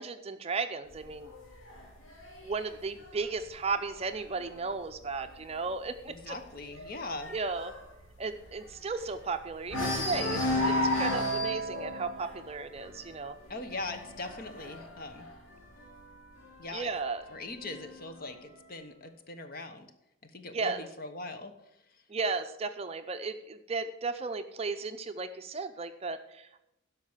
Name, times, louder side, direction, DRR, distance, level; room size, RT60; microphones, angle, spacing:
voice 1, 0.0-1.3 2.4-6.4 7.3-7.7 8.2-13.4 16.7-17.2 20.5-20.8 22.1-26.6, right 4 dB, 30° right, 8 dB, 0.5 m, -35 dB
sound 1, 0.9-4.5 4.9-5.3 5.5-5.6 6.0-9.3 9.7-16.2 17.1-18.1, left 1 dB, 70° left, 2.8 m, -34 dB
voice 2, 6.1-7.3 13.5-15.3 16.6-16.9 17.3-19.9 20.2-21.5, left 2 dB, 45° left, 8 dB, 1.0 m, -41 dB
12.5 x 5.4 x 7.2 m, 0.85 s
head